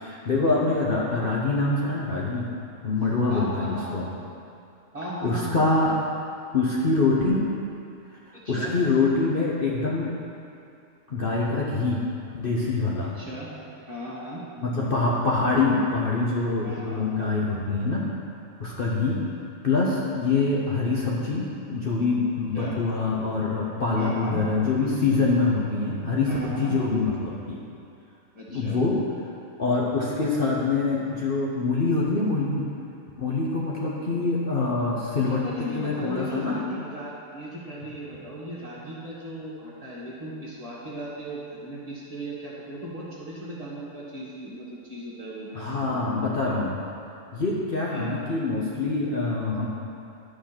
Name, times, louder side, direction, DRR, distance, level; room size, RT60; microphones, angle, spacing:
voice 1, 0.1-2.5 2.8-4.0 5.2-6.0 6.5-7.5 8.5-10.1 11.1-12.0 12.3-13.1 14.6-18.0 18.6-19.2 19.6-27.6 28.5-29.0 29.6-32.6 33.2-35.4 35.7-36.6 45.5-46.7 47.3-49.7, left 3 dB, 45° left, -4 dB, 1.0 m, -25 dB
voice 2, 3.3-3.9 4.9-5.6 8.3-8.8 13.0-13.5 13.9-14.4 16.6-17.3 22.5-22.8 23.9-24.5 26.3-26.8 28.3-28.8 35.3-46.6 47.9-48.2, right 1 dB, 25° right, -7 dB, 1.8 m, -37 dB
11.0 x 5.2 x 6.0 m, 2.5 s
omnidirectional pair, 1.4 m